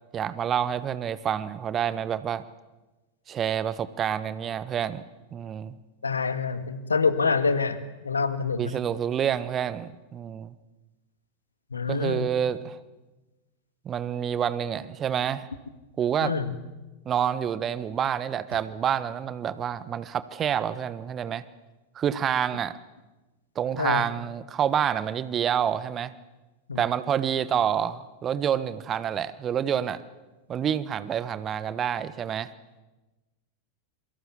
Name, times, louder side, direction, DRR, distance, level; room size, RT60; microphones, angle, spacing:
voice 1, 0.1-2.4 3.3-5.0 5.3-5.8 8.6-10.5 11.9-12.8 13.8-15.5 16.0-16.3 17.0-21.4 21.9-22.7 23.5-26.1 26.8-30.0 30.5-32.5, right 9 dB, 25° right, 1.2 m, -28 dB
voice 2, 6.0-7.8 8.0-8.7 11.7-12.3 16.2-16.5 23.8-24.0 26.7-26.8, left 5 dB, 75° left, 1.7 m, -26 dB
27.5 x 24.0 x 7.2 m
figure-of-eight pair, 90°, 0 cm